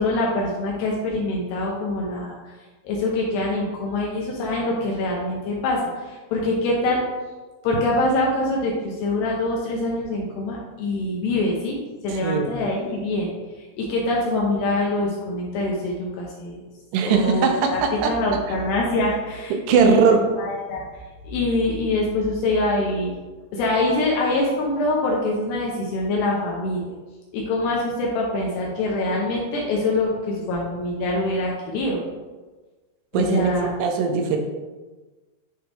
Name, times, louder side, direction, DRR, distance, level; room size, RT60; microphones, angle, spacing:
voice 1, 0.0-2.5 2.8-7.0 7.6-13.3 13.6-16.6 17.1-17.8 18.1-23.1 23.5-26.9 27.3-32.0 33.1-33.8, left 2 dB, 75° left, -2 dB, 2.6 m, -24 dB
voice 2, 12.1-12.5 16.9-18.1 19.5-20.2 33.1-33.5 33.8-34.4, right 6 dB, 85° right, 4 dB, 3.1 m, -20 dB
10.0 x 3.5 x 3.5 m, 1.3 s
omnidirectional pair, 5.6 m